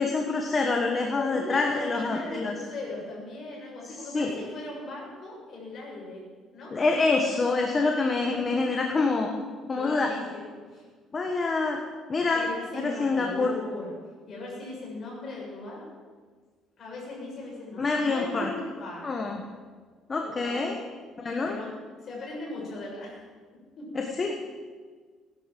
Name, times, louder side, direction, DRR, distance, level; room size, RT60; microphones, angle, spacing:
voice 1, 0.0-2.5 3.9-4.3 6.7-9.3 9.7-10.1 11.1-11.8 12.1-12.5 12.7-13.5 17.8-18.5 19.0-19.4 20.1-20.8 21.2-21.6 23.9-24.4, left 3 dB, 20° left, 2 dB, 1.3 m, -26 dB
voice 2, 1.1-6.2 6.5-6.7 8.2-8.4 9.7-10.8 12.3-13.9 14.3-15.8 16.8-19.3 20.2-20.7 21.4-21.7 22.0-23.2 23.8-23.9, left 2 dB, 35° left, -3 dB, 6.7 m, -38 dB
17.5 x 11.0 x 7.5 m, 1.6 s
cardioid pair, 175°, 0 cm